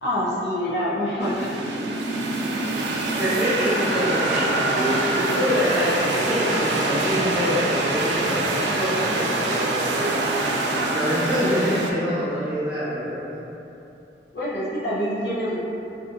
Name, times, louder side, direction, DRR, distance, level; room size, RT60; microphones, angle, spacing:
voice 1, 0.0-2.0 14.3-15.6, equal, 70° left, -8 dB, 0.6 m, -26 dB
sound 1, 1.2-11.9, right 2 dB, 85° right, 0.3 m, -24 dB
voice 2, 3.2-10.1 10.9-13.4, equal, 5° right, -12 dB, 0.7 m, -25 dB
2.6 x 2.5 x 2.4 m, 2.8 s
head